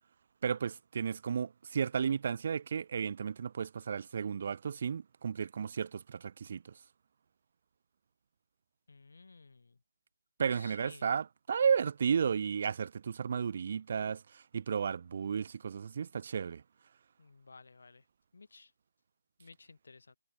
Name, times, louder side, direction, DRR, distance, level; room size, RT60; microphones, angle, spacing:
voice 1, 0.4-6.7 10.4-16.6, right 7 dB, 40° right, 0.9 m, -33 dB
voice 2, 8.9-9.8 10.5-11.1 17.2-18.0 18.3-18.7 19.4-20.2, left 4 dB, 65° left, 4.2 m, -55 dB
figure-of-eight pair, 165°, 0 cm